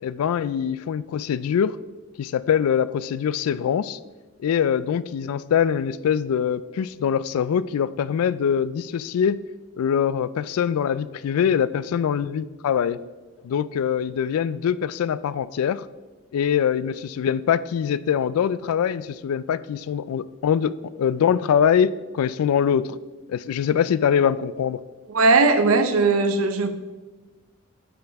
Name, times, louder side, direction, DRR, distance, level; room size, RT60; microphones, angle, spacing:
voice 1, 0.0-1.8 2.2-4.0 4.4-9.4 9.8-13.0 13.4-15.9 16.3-23.0 23.3-24.8, left 8 dB, 85° left, 0.3 m, -23 dB
voice 2, 25.1-26.7, right 3 dB, 80° right, 0.7 m, -18 dB
10.0 x 5.3 x 3.5 m
head